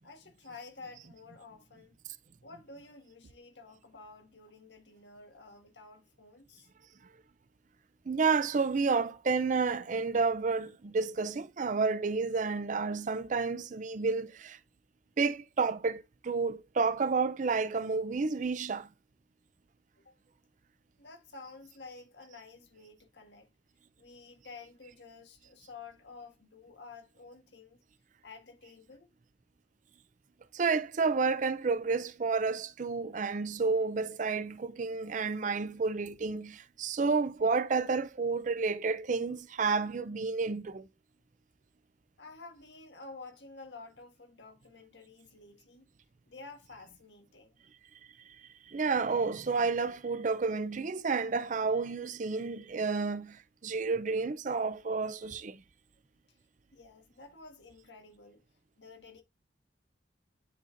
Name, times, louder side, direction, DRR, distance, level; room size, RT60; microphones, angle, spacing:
voice 1, 0.0-2.0 2.4-6.7 20.0-20.2 21.0-23.5 24.0-27.8 28.2-29.1 41.2-41.3 42.2-45.8 46.3-47.5 56.3-56.4 56.7-58.4 58.8-59.2, left 3 dB, 70° left, 1.7 m, -51 dB
voice 2, 1.0-1.4 2.5-2.6 8.1-14.6 15.2-18.9 30.5-40.9 48.2-55.6, right 4 dB, 45° right, 0.5 m, -30 dB
10.5 x 4.2 x 2.5 m
head